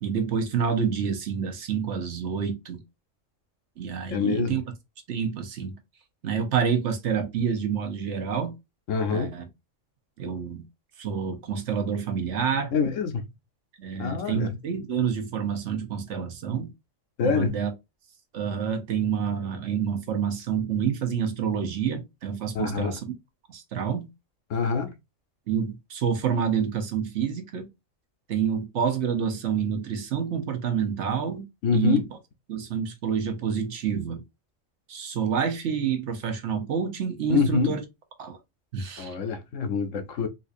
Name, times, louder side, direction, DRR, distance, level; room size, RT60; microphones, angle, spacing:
voice 1, 0.0-2.8 3.8-4.6 5.1-5.7 6.2-8.6 9.1-9.4 10.2-10.6 11.0-12.7 13.8-16.7 17.2-17.7 18.3-23.1 23.5-24.1 25.5-27.7 28.3-31.4 31.7-32.0 32.5-34.2 34.9-37.8 38.2-38.4 38.7-39.2, right 7 dB, 70° right, 1.1 m, -28 dB
voice 2, 4.1-4.6 8.9-9.3 12.7-13.3 14.0-14.6 17.2-17.5 22.5-23.0 24.5-24.9 31.6-32.1 37.3-37.8 39.0-40.3, left 5 dB, 80° left, 1.1 m, -25 dB
4.1 x 2.6 x 2.5 m
omnidirectional pair, 1.3 m